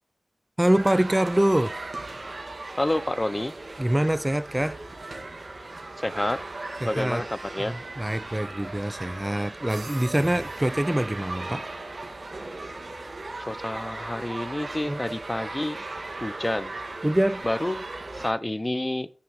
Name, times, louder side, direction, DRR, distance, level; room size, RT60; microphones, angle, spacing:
voice 1, 0.6-1.7 3.8-4.8 6.8-7.2 7.7-11.7 14.9-15.0 17.0-17.4, right 1 dB, 15° right, 0.3 m, -24 dB
sound 1, 0.7-18.3, right 2 dB, 65° right, 1.9 m, -37 dB
voice 2, 2.8-3.5 6.0-6.4 6.8-7.3 7.5-7.7 13.4-15.8 16.2-16.7 17.4-19.1, left 1 dB, 25° left, 0.6 m, -29 dB
sound 2, 6.7-7.0 8.6-10.3 11.8-12.0, left 2 dB, 80° left, 2.3 m, -55 dB
sound 3, 9.7-11.8, right 3 dB, 80° right, 0.8 m, -49 dB
10.0 x 6.0 x 4.7 m
wide cardioid pair, 65°, 0 cm